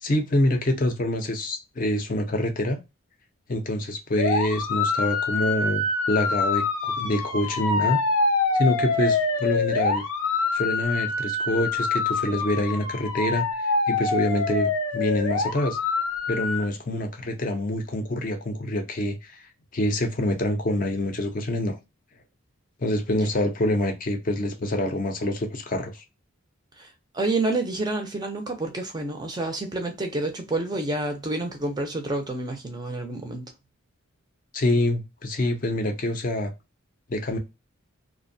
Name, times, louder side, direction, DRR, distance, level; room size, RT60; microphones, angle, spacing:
voice 1, 0.0-2.8 3.5-8.0 8.5-10.0 10.5-15.8 16.3-19.4 19.7-21.8 22.8-26.0 34.5-36.5 37.1-37.4, left 1 dB, 40° left, 0.5 m, -26 dB
sound 1, 4.2-16.6, left 3 dB, 85° left, 0.6 m, -25 dB
voice 2, 26.8-33.5, right 2 dB, 20° right, 0.4 m, -29 dB
2.5 x 2.1 x 2.5 m
head